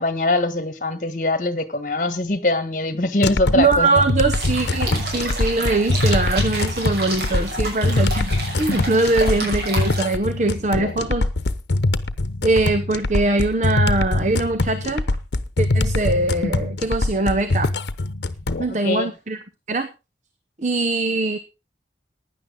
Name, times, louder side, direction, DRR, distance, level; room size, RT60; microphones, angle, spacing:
voice 1, 0.0-3.9 9.4-9.5 18.8-19.1, left 2 dB, 45° left, 1.4 m, -22 dB
sound 1, 3.2-18.6, left 2 dB, 80° left, 0.9 m, -23 dB
voice 2, 3.5-11.3 12.4-15.0 15.6-17.7 18.6-19.4 19.7-19.9 20.6-21.4, right 2 dB, 40° right, 0.9 m, -22 dB
sound 2, 4.3-10.0, right 1 dB, 70° right, 6.2 m, -30 dB
16.0 x 10.0 x 3.9 m
head